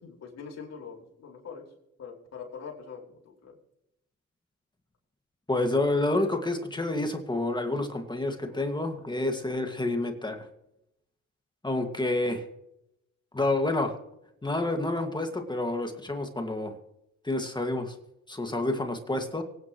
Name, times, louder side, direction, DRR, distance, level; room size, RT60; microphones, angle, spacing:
voice 1, 0.0-1.6 2.0-3.6, left 6 dB, 60° left, -1 dB, 4.9 m, -43 dB
voice 2, 5.5-10.5 11.6-12.4 13.3-14.0 14.4-16.7 17.2-17.9 18.3-19.4, left 2 dB, 15° left, 4 dB, 1.9 m, -28 dB
24.5 x 9.9 x 3.1 m, 0.83 s
cardioid pair, 90°, 30 cm